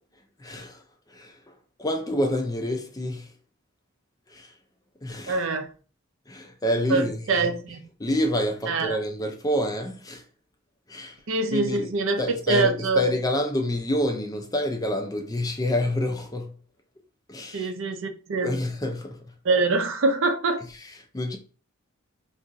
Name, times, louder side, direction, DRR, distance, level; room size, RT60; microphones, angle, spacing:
voice 1, 0.4-3.3 4.3-4.6 5.0-5.5 6.3-7.5 8.0-10.2 10.9-11.2 11.5-11.9 12.2-16.6 17.3-17.7 18.4-19.3 20.6-21.4, left 1 dB, 15° left, 0.4 m, -28 dB
voice 2, 5.3-5.7 6.9-7.8 8.7-9.0 11.3-12.2 12.5-13.0 17.5-18.5 19.5-20.6, right 3 dB, 65° right, 0.5 m, -24 dB
2.5 x 2.4 x 3.9 m
head